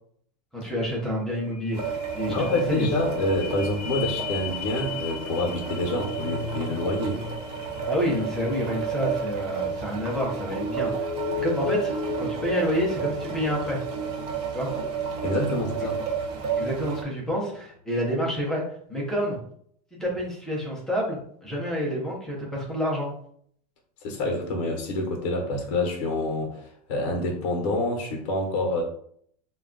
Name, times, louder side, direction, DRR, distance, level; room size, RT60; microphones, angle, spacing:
voice 1, 0.5-2.9 7.9-11.1 11.4-11.9 12.2-13.8 14.5-14.7 16.5-18.6 18.9-19.4 19.9-23.1, equal, ahead, -4 dB, 0.4 m, -28 dB
sound 1, 1.1-17.1 17.5-17.6, left 8 dB, 85° left, 0.5 m, -37 dB
sound 2, 1.7-17.0, right 6 dB, 85° right, 0.7 m, -32 dB
voice 2, 2.3-7.2 15.2-16.0 24.0-28.8, left 2 dB, 50° left, 1 dB, 0.7 m, -27 dB
2.2 x 2.2 x 3.6 m, 0.63 s
supercardioid pair, 180°, 20 cm